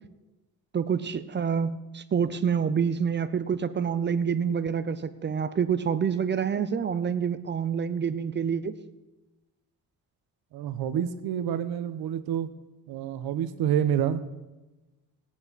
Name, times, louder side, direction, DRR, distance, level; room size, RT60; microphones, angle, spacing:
voice 1, 0.7-8.7, right 7 dB, 30° right, 12 dB, 0.6 m, -27 dB
voice 2, 10.5-12.5 12.9-14.2, right 9 dB, 90° right, 11 dB, 1.0 m, -28 dB
18.0 x 9.7 x 4.1 m, 1.1 s
cardioid pair, 145°, 36 cm